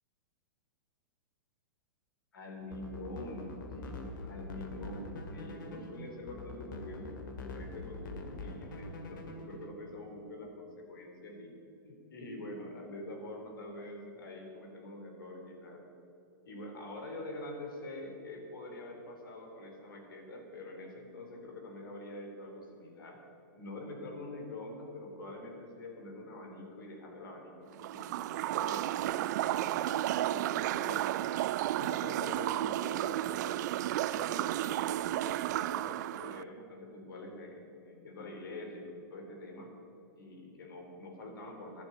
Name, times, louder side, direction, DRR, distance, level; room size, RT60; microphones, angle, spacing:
voice 1, 2.3-11.5 11.8-15.8 16.4-23.2 23.5-31.0 31.7-33.7 34.1-39.7 40.2-41.8, left 1 dB, 90° left, 2 dB, 3.8 m, -45 dB
sound 1, 2.6-9.7, left 2 dB, 70° left, 2.1 m, -44 dB
sound 2, 27.8-36.4, right 14 dB, 55° right, 0.4 m, -33 dB
11.5 x 11.0 x 8.9 m, 2.7 s
hypercardioid pair, 145°, 11 cm